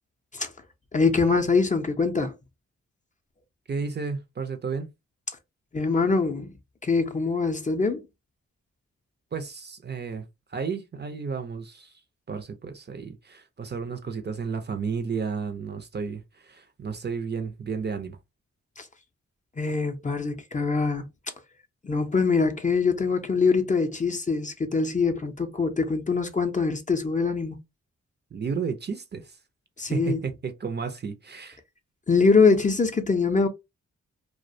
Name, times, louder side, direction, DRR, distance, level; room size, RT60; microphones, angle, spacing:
voice 1, 0.9-2.3 5.7-6.5 6.8-8.0 18.8-18.9 19.6-21.0 21.8-27.6 29.8-30.2 32.1-33.5, left 4 dB, 25° left, 0.5 m, -23 dB
voice 2, 3.7-4.9 9.3-11.9 12.3-18.2 28.3-29.4 29.9-31.6, right 5 dB, 35° right, 0.5 m, -32 dB
2.3 x 2.1 x 2.6 m
cardioid pair, 60°, 30 cm